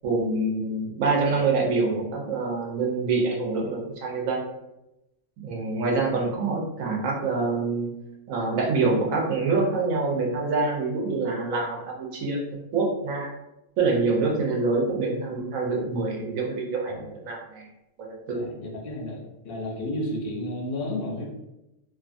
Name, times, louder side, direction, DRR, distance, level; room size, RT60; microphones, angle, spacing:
voice 1, 0.0-4.4 5.4-7.9 8.3-12.4 12.7-13.3 13.8-17.7 18.0-18.4, right 3 dB, 75° right, -1 dB, 1.1 m, -26 dB
voice 2, 18.3-21.3, left 1 dB, 55° left, -1 dB, 0.7 m, -32 dB
2.5 x 2.5 x 2.5 m, 0.92 s
omnidirectional pair, 1.4 m